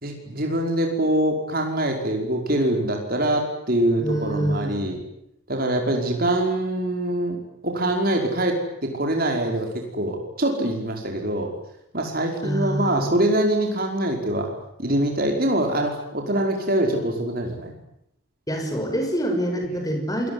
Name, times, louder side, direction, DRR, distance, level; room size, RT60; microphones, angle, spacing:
voice 1, 0.0-5.0 5.5-11.5 11.9-14.5 14.8-17.7 19.7-19.8, right 1 dB, 45° right, 2 dB, 5.3 m, -24 dB
voice 2, 4.0-4.9 12.4-13.1 18.5-20.3, equal, 15° left, 4 dB, 6.2 m, -26 dB
27.0 x 20.0 x 9.8 m, 0.76 s
head